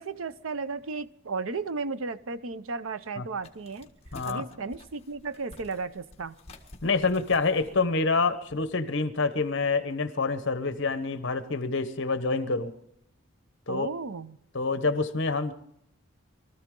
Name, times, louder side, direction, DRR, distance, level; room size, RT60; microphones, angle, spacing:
voice 1, 0.0-3.9 4.2-6.4 13.7-14.4, right 4 dB, 75° right, 14 dB, 0.6 m, -34 dB
sound 1, 3.4-8.7, left 2 dB, 30° left, 1.5 m, -50 dB
voice 2, 4.1-4.4 6.8-12.7 13.7-13.9 14.5-15.5, left 4 dB, 60° left, 11 dB, 1.0 m, -27 dB
23.0 x 13.5 x 3.8 m, 0.75 s
head